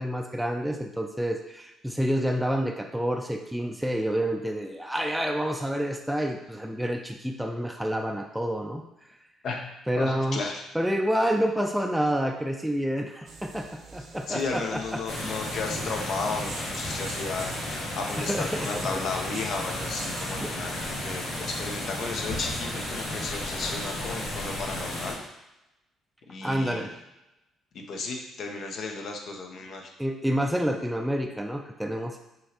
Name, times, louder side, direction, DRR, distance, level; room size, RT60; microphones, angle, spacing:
voice 1, 0.0-8.8 9.9-10.4 10.7-15.0 18.3-18.9 20.4-20.5 21.3-21.4 26.4-26.9 30.0-32.2, equal, 5° right, 3 dB, 0.4 m, -28 dB
voice 2, 9.4-10.6 14.3-17.5 17.9-25.2 26.3-26.9 27.7-29.9, left 4 dB, 65° left, 3 dB, 0.8 m, -34 dB
sound 1, 13.2-24.3, right 3 dB, 65° right, 0.8 m, -46 dB
sound 2, 15.1-25.1, left 1 dB, 85° left, 1.5 m, -33 dB
5.3 x 3.0 x 2.9 m, 0.94 s
supercardioid pair, 70°, 0 cm